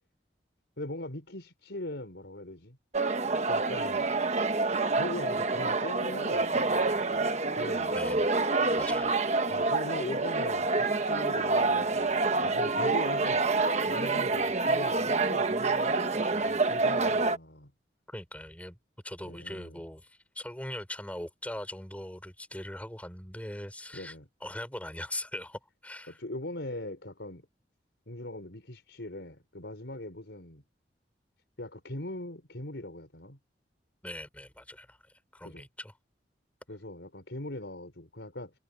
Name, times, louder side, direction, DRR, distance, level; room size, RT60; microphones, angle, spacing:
voice 1, 0.8-2.8 3.5-4.1 4.4-4.5 5.0-7.3 7.5-8.0 9.5-13.4 13.9-17.7 19.3-19.8 23.9-24.3 26.1-27.5 28.1-30.6 31.6-33.4 35.4-35.6 36.7-38.5, left 1 dB, 85° left, 4.3 m, -40 dB
sound 1, 2.9-17.4, right 3 dB, 40° right, 1.2 m, -27 dB
voice 2, 7.9-8.3 8.8-9.2 18.1-18.8 19.0-24.2 24.4-26.2 34.0-35.9, left 1 dB, 10° left, 5.1 m, -40 dB
head